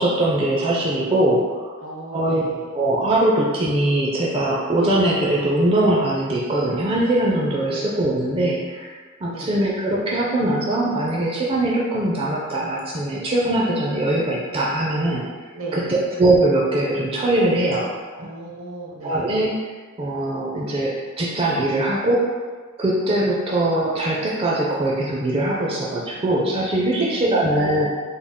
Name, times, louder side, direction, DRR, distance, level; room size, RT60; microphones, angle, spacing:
voice 1, 0.0-1.7 2.1-2.4 2.7-8.9 9.2-15.2 16.2-17.9 19.0-19.5 20.0-22.4 22.8-27.9, right 1 dB, 25° right, -4 dB, 0.4 m, -21 dB
voice 2, 1.8-2.7 7.7-8.0 9.3-9.6 15.5-16.0 18.1-19.4 27.0-27.9, right 2 dB, 70° right, -2 dB, 0.8 m, -36 dB
3.5 x 2.3 x 3.5 m, 1.4 s
head